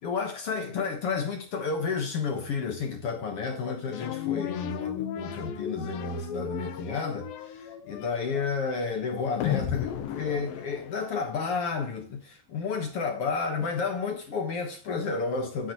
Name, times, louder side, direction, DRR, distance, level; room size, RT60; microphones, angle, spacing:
voice 1, 0.0-7.3 7.8-15.7, left 5 dB, 60° left, 1.6 m, -31 dB
sound 1, 3.9-11.4, left 10 dB, 75° left, 2.5 m, -35 dB
9.9 x 9.9 x 3.1 m
omnidirectional pair, 4.5 m